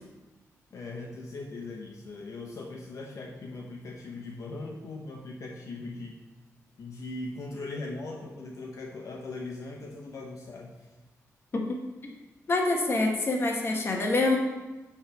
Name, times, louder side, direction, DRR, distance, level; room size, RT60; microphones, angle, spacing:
voice 1, 0.7-6.2 6.8-10.9, left 2 dB, 65° left, 0 dB, 0.9 m, -39 dB
voice 2, 12.5-14.4, left 2 dB, 45° left, 1 dB, 1.1 m, -26 dB
8.6 x 3.4 x 6.1 m, 1.1 s
cardioid pair, 85°, 6 cm